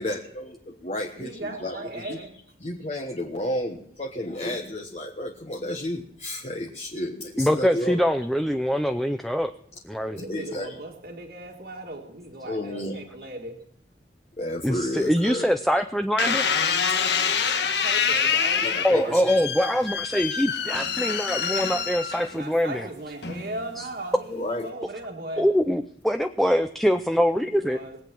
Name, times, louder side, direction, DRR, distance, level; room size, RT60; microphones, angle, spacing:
voice 1, 0.0-2.2 2.6-8.1 10.2-10.8 12.4-13.0 14.4-15.5 18.6-19.4 24.3-24.7, left 1 dB, 35° left, 1 dB, 1.3 m, -32 dB
voice 2, 1.1-2.3 10.0-13.6 17.8-19.2 22.3-25.5 27.4-28.0, right 1 dB, 55° right, 0 dB, 1.8 m, -37 dB
voice 3, 7.4-9.5 9.9-10.2 14.6-16.5 18.8-22.9 23.8-23.9 25.4-27.8, equal, ahead, 7 dB, 0.5 m, -24 dB
sound 1, 16.2-22.6 23.2-23.7, left 6 dB, 70° left, 1.4 m, -26 dB
21.0 x 8.3 x 6.1 m, 0.65 s
head